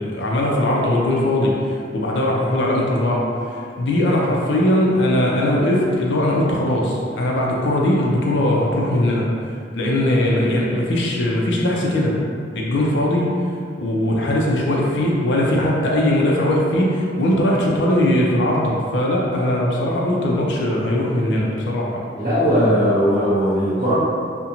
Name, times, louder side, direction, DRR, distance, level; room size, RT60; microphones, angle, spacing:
voice 1, 0.0-9.3 9.7-12.2 12.5-13.4 13.8-22.0, left 1 dB, 65° left, -3 dB, 0.4 m, -20 dB
voice 2, 22.2-23.9, equal, 50° right, -11 dB, 1.0 m, -18 dB
2.4 x 2.1 x 2.8 m, 2.3 s
head